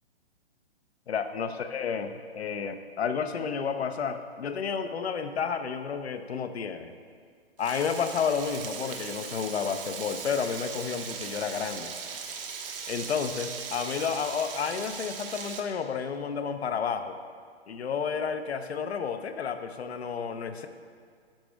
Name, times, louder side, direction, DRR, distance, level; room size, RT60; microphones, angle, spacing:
voice 1, 1.1-6.9 7.6-11.9 12.9-17.2 17.7-20.7, left 6 dB, 75° left, 9 dB, 0.7 m, -31 dB
Frying (food), 7.6-15.6, right 6 dB, 60° right, 1.0 m, -39 dB
11.5 x 5.0 x 3.4 m, 2.1 s
hypercardioid pair, 135°, 32 cm